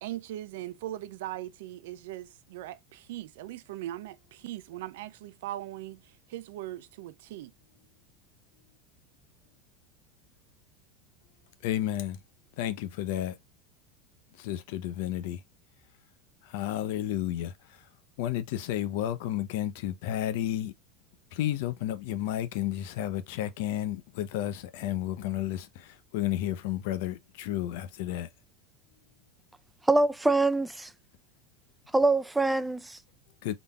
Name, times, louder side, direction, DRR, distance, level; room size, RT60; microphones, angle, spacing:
voice 1, 0.0-7.5, right 14 dB, 75° right, 0.5 m, -40 dB
voice 2, 11.6-12.2 12.6-13.4 14.4-15.4 16.4-17.9 18.2-20.7 21.3-28.3 33.4-33.5, left 12 dB, 70° left, 0.7 m, -32 dB
voice 3, 29.8-30.9 31.9-33.0, right 2 dB, 10° right, 0.5 m, -24 dB
4.0 x 3.5 x 2.3 m
hypercardioid pair, 95°, 0 cm